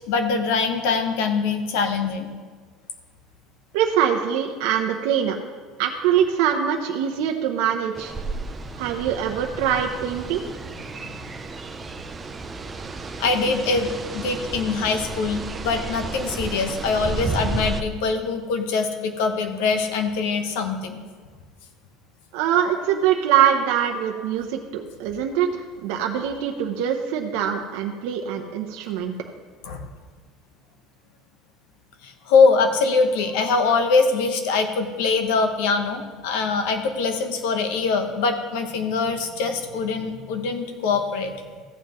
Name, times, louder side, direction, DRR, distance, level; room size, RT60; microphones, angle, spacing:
voice 1, 0.1-2.3 13.2-13.9 14.1-21.0 29.6-29.9 32.0-41.3, left 4 dB, 80° left, 6 dB, 1.1 m, -23 dB
voice 2, 3.7-5.4 5.8-8.1 8.8-10.4 22.3-29.1, right 9 dB, 70° right, 2 dB, 0.7 m, -23 dB
sound 1, 8.0-17.8, right 3 dB, 15° right, 0.5 m, -32 dB
14.5 x 9.3 x 3.1 m, 1.5 s
cardioid pair, 180°, 0 cm